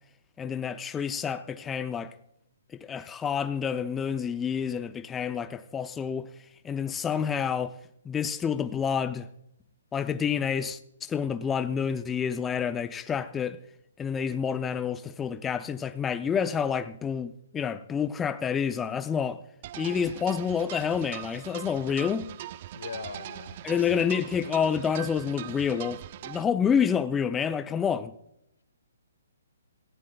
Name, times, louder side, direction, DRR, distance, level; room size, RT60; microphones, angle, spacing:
voice 1, 0.4-2.1 2.7-6.3 6.6-7.8 8.1-9.3 9.9-13.6 14.0-19.4 19.8-22.3 23.6-28.1, left 7 dB, 15° left, 0.4 m, -28 dB
sound 1, 19.6-26.4, right 12 dB, 45° right, 0.5 m, -41 dB
voice 2, 22.7-23.9, left 5 dB, 75° left, 1.2 m, -41 dB
17.5 x 16.0 x 2.3 m
hypercardioid pair, 140°, 0 cm